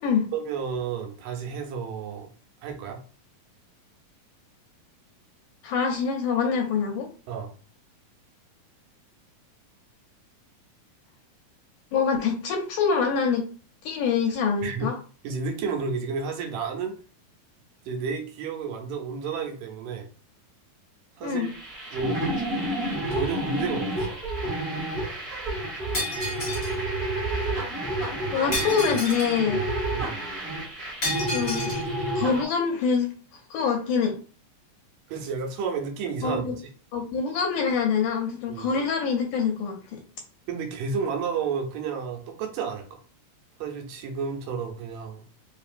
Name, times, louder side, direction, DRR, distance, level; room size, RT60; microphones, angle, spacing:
voice 1, 0.3-2.3 2.6-3.0 7.3-7.5 14.6-14.9 15.2-16.9 17.9-20.1 21.2-21.5 21.9-22.2 23.1-24.2 29.9-30.2 35.1-36.5 38.5-38.7 40.5-43.0 43.6-45.3, right 5 dB, 75° right, 3 dB, 2.3 m, -31 dB
voice 2, 5.6-7.1 11.9-13.4 13.8-15.0 21.2-21.5 28.3-29.6 31.3-31.7 32.2-33.1 33.5-34.2 36.2-36.6 36.9-40.0, left 6 dB, 80° left, 3 dB, 1.9 m, -25 dB
sound 1, 21.4-32.4, right 1 dB, 30° right, 1.2 m, -30 dB
Shatter, 25.9-26.8 28.5-29.4 31.0-31.8, left 1 dB, 35° left, 1.0 m, -31 dB
5.2 x 2.8 x 2.5 m, 0.40 s
omnidirectional pair, 3.9 m